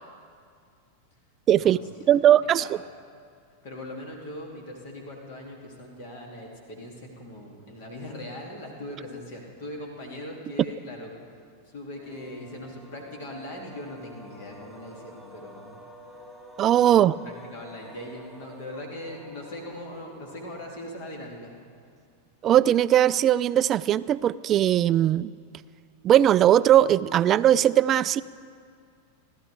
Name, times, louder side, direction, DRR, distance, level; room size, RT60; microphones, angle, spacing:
voice 1, 1.5-1.8 2.1-2.8 16.6-17.2 22.4-25.3 26.0-28.2, right 11 dB, 30° right, 18 dB, 0.3 m, -19 dB
voice 2, 2.1-2.8 3.6-11.2 11.7-15.8 16.7-17.0 17.2-21.5, left 1 dB, 50° left, 1 dB, 2.6 m, -40 dB
sound 1, 11.9-21.3, equal, 5° left, 2.6 m, -49 dB
30.0 x 12.5 x 3.4 m, 2.2 s
figure-of-eight pair, 90°, 0 cm